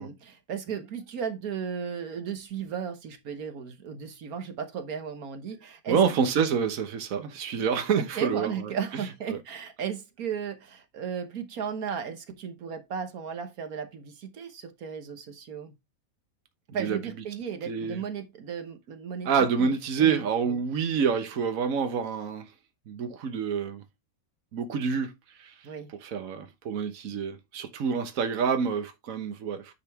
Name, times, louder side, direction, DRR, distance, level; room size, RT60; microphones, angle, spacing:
voice 1, 0.0-6.0 8.0-15.7 16.7-19.3 19.6-20.5 25.6-25.9, right 7 dB, 85° right, 1.6 m, -35 dB
voice 2, 5.9-8.7 9.3-9.4 16.8-17.0 17.7-18.0 19.2-22.5 22.9-23.8 24.5-25.1 25.4-25.5 26.0-29.7, right 6 dB, 70° right, 1.4 m, -27 dB
9.8 x 5.1 x 3.5 m
omnidirectional pair, 1.5 m